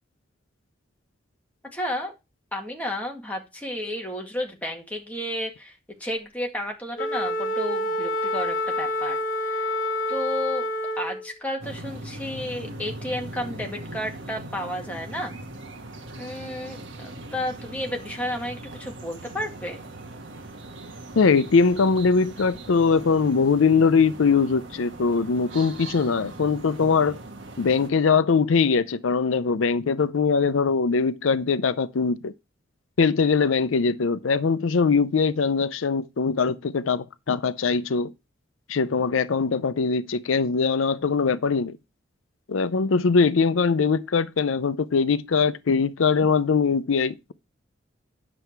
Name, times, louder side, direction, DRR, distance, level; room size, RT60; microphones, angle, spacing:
voice 1, 1.7-2.1 2.5-5.7 6.0-9.2 9.4-9.7 10.1-10.7 11.0-15.4 16.2-19.8, left 1 dB, 10° left, 1.9 m, -32 dB
Wind instrument woodwind instrument, 7.0-11.3, left 1 dB, 45° left, 1.6 m, -27 dB
sound 1, 11.6-27.9, right 2 dB, 70° right, 1.5 m, -40 dB
voice 2, 21.2-27.2 27.6-32.3 33.0-38.1 38.7-41.7 42.5-47.3, left 5 dB, 85° left, 0.5 m, -22 dB
9.9 x 6.9 x 4.5 m
head